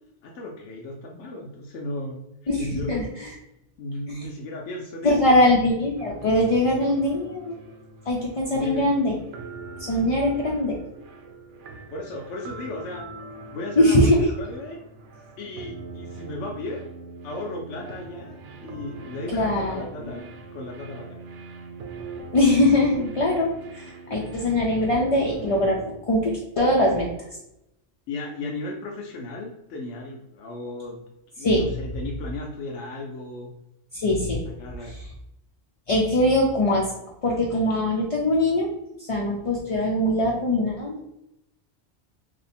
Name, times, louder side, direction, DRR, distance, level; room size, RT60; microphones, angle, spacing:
voice 1, 0.2-2.2 2.6-3.1 3.8-5.7 8.5-8.9 11.9-13.0 13.5-14.1 14.4-14.8 15.4-16.8 17.2-21.2 28.1-31.0 31.4-33.5 34.5-34.9, left 2 dB, 80° left, -1 dB, 0.9 m, -35 dB
voice 2, 2.5-3.3 4.1-4.2 5.0-7.5 8.1-9.2 9.8-10.8 13.8-14.3 19.3-20.2 22.3-27.1 31.4-31.7 33.9-34.4 34.9-35.0 35.9-36.9 37.2-38.7 39.0-41.1, left 1 dB, 40° left, -3 dB, 0.5 m, -22 dB
Silent Sex - Ohnmacht, 6.0-25.9, right 3 dB, 85° right, 0.9 m, -41 dB
3.0 x 2.7 x 4.2 m, 0.85 s
omnidirectional pair, 1.2 m